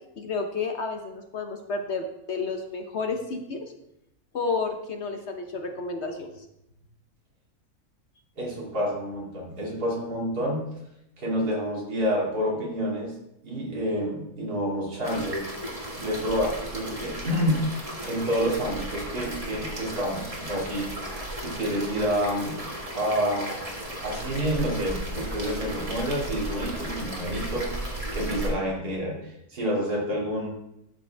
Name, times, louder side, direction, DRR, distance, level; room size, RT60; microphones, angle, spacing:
voice 1, 0.2-3.6 4.3-6.5, left 4 dB, 50° left, 4 dB, 1.1 m, -31 dB
voice 2, 8.4-10.8 11.2-13.2 13.4-15.5 16.0-22.7 22.9-23.7 24.0-30.5, equal, 85° right, -3 dB, 3.0 m, -29 dB
sound 1, 15.0-28.5, right 1 dB, 25° right, 1.7 m, -35 dB
12.0 x 6.7 x 3.4 m, 0.84 s
omnidirectional pair, 1.6 m